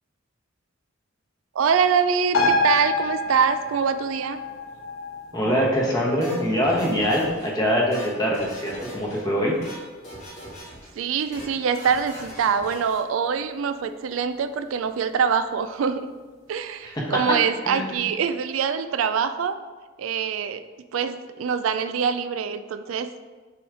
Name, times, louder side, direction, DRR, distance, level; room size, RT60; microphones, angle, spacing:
voice 1, 1.5-4.4 11.0-16.1 16.5-19.6 20.0-20.6 20.9-23.1, right 6 dB, 75° right, 11 dB, 0.3 m, -24 dB
sound 1, 2.3-9.3 9.6-9.7, left 2 dB, 85° left, 1.1 m, -28 dB
voice 2, 5.3-9.6 16.8-17.2 17.6-18.0, equal, 20° left, -3 dB, 1.2 m, -23 dB
sound 2, 6.2-7.5 7.8-9.2 9.5-9.8 10.0-10.9 11.2-11.5 11.7-13.0, equal, 35° left, 1.8 m, -41 dB
6.9 x 3.1 x 5.0 m, 1.4 s
head